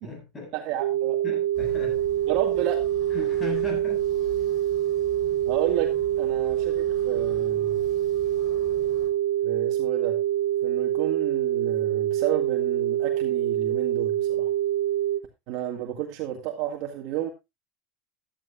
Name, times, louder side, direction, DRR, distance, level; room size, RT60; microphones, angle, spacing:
voice 1, 0.0-0.6 1.2-2.1 3.1-4.1, left 3 dB, 15° left, 7.5 m, -37 dB
voice 2, 0.5-1.2 2.3-2.8 5.5-5.9 6.2-7.8 9.4-10.2 10.6-14.5 15.5-17.3, right 11 dB, 55° right, 1.9 m, -31 dB
sound 1, 0.8-15.2, right 12 dB, 85° right, 0.5 m, -25 dB
sound 2, 1.5-9.1, left 3 dB, 35° left, 4.5 m, -46 dB
14.0 x 12.0 x 2.5 m
supercardioid pair, 155°, 0 cm